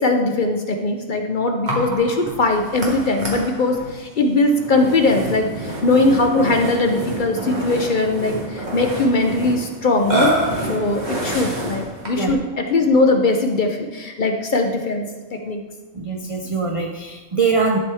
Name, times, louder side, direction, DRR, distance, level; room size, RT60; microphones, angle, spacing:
voice 1, 0.0-10.4 10.7-15.1 15.3-15.6, left 2 dB, 50° left, 4 dB, 0.6 m, -20 dB
Burping eructation, 1.7-12.4, right 1 dB, 35° right, 1.6 m, -28 dB
voice 2, 15.9-17.8, right 4 dB, 60° right, 2 dB, 0.3 m, -22 dB
11.5 x 4.4 x 3.4 m, 1.3 s
omnidirectional pair, 1.3 m